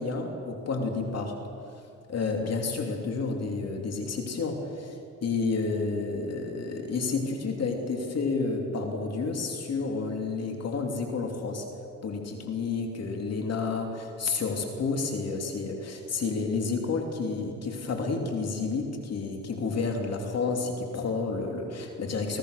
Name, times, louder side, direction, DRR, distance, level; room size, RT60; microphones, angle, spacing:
voice 1, 0.0-1.4 2.1-11.6 12.0-22.4, left 4 dB, 55° left, 3 dB, 2.9 m, -30 dB
25.0 x 17.5 x 6.6 m, 2.5 s
cardioid pair, 90°, 30 cm